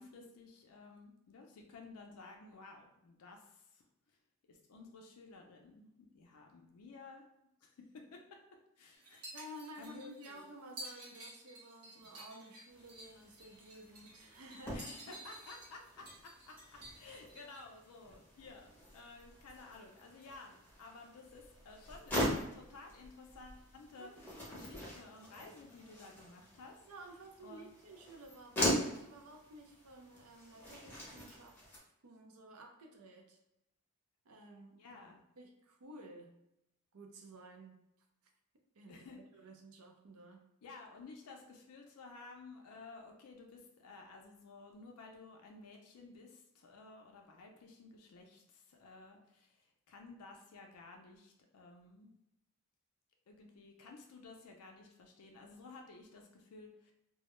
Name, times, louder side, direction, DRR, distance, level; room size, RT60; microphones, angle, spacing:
voice 1, 0.0-3.8 4.5-7.2 7.6-8.4 8.8-9.2 9.8-10.4 12.0-12.1 14.7-26.8 27.4-27.7 34.8-35.2 38.9-39.2 40.6-52.1 53.3-56.9, left 3 dB, 75° left, 1 dB, 0.4 m, -54 dB
sound 1, 9.0-17.6, right 1 dB, 90° right, 1.0 m, -52 dB
voice 2, 9.3-15.2 24.0-24.4 26.9-31.6 32.0-33.4 34.2-35.0 35.4-36.4 36.9-37.8 38.8-40.4, right 1 dB, 70° right, 3 dB, 0.5 m, -53 dB
sound 2, 12.7-31.8, equal, 10° left, 0.7 m, -42 dB
2.2 x 2.0 x 2.9 m, 0.85 s
head